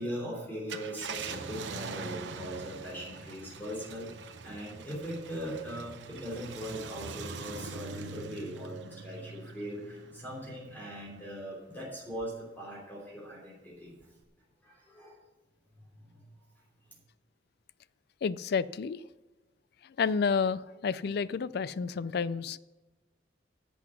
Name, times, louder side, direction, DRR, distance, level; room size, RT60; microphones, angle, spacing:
voice 1, 0.0-14.0 14.6-15.2 16.0-16.2 16.8-17.0, equal, 10° left, -4 dB, 2.9 m, -40 dB
Car, 0.5-11.4 11.9-12.0 14.0-14.2, right 4 dB, 75° right, 0.8 m, -43 dB
voice 2, 18.2-19.0 19.8-22.6, left 5 dB, 60° left, 18 dB, 0.4 m, -30 dB
10.5 x 7.9 x 6.1 m, 1.2 s
head